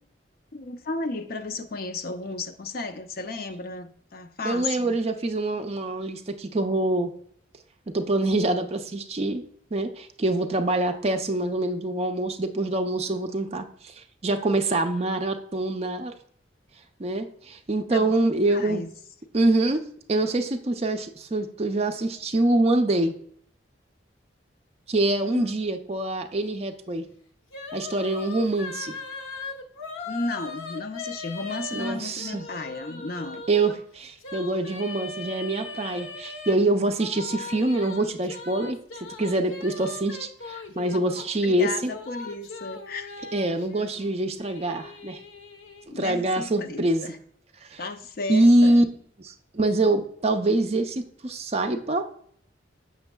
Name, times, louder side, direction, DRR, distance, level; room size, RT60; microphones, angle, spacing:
voice 1, 0.5-5.0 17.9-18.9 25.3-25.5 30.1-33.4 40.9-41.1 41.4-43.1 45.9-47.2 47.8-48.8, left 3 dB, 50° left, 7 dB, 0.5 m, -34 dB
voice 2, 4.4-7.1 7.9-9.4 9.7-16.1 17.0-18.9 19.3-19.8 20.1-23.1 24.9-27.0 27.7-28.9 31.7-32.4 33.5-38.8 39.2-41.9 43.3-45.2 45.9-47.0 47.7-47.8 48.3-48.8 49.2-52.1, right 2 dB, 35° right, 6 dB, 0.5 m, -25 dB
sound 1, 27.5-33.7 34.2-36.5 37.0-41.3 41.6-45.9, left 3 dB, 90° left, 0.8 m, -39 dB
6.9 x 6.2 x 2.2 m, 0.62 s
head